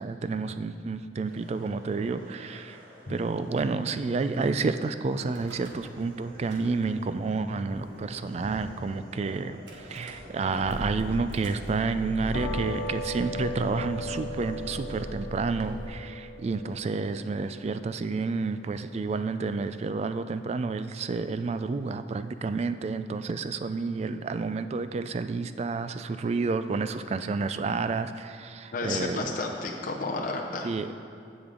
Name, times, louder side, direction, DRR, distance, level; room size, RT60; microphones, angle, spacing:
voice 1, 0.0-2.8 3.1-29.4 30.6-31.1, right 4 dB, 35° right, 11 dB, 0.3 m, -30 dB
sound 1, 1.2-15.0, equal, 55° right, 1.9 m, -49 dB
Car / Engine starting / Idling, 5.3-6.0 6.3-7.1 7.8-7.9 8.0-8.1 8.4-8.7 9.7-15.8, equal, 85° right, 1.4 m, -40 dB
sound 2, 12.3-18.8, left 1 dB, 75° left, 1.5 m, -38 dB
voice 2, 28.7-30.7, left 3 dB, 50° left, 1 dB, 0.7 m, -32 dB
15.0 x 5.2 x 3.8 m, 2.4 s
head